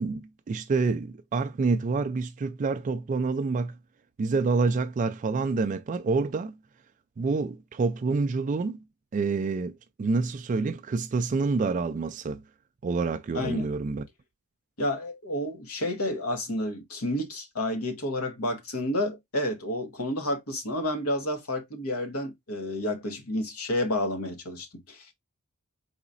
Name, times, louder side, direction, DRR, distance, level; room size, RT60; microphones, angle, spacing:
voice 1, 0.0-3.8 4.2-6.5 7.2-8.8 9.1-12.4 12.8-14.0, right 4 dB, 35° right, 0.3 m, -27 dB
voice 2, 13.3-13.7 14.8-25.1, left 1 dB, 80° left, 1.3 m, -30 dB
4.8 x 4.0 x 2.5 m
head